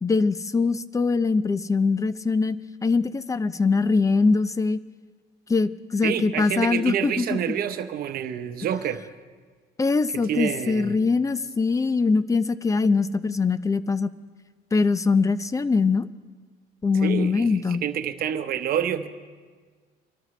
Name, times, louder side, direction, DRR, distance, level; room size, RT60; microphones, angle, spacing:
voice 1, 0.0-2.6 2.8-4.8 5.5-7.4 9.8-14.1 14.7-16.1 16.8-17.8, left 4 dB, 20° left, 15 dB, 0.5 m, -22 dB
voice 2, 6.0-9.0 10.3-11.1 17.0-19.1, right 9 dB, 60° right, 9 dB, 0.9 m, -28 dB
24.5 x 12.5 x 3.2 m, 1.5 s
cardioid pair, 110°, 17 cm